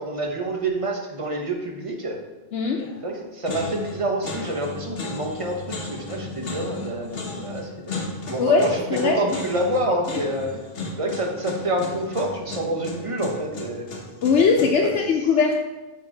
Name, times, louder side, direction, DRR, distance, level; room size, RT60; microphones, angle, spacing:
voice 1, 0.0-2.2 3.0-10.6 11.0-13.9, right 1 dB, 35° right, 1 dB, 0.8 m, -27 dB
voice 2, 2.5-2.8 8.4-9.2 14.2-15.6, left 5 dB, 90° left, 0 dB, 0.9 m, -20 dB
sound 1, 2.8-3.1 3.5-14.9, left 3 dB, 60° left, 1.1 m, -35 dB
7.3 x 2.9 x 4.9 m, 1.1 s
omnidirectional pair, 1.1 m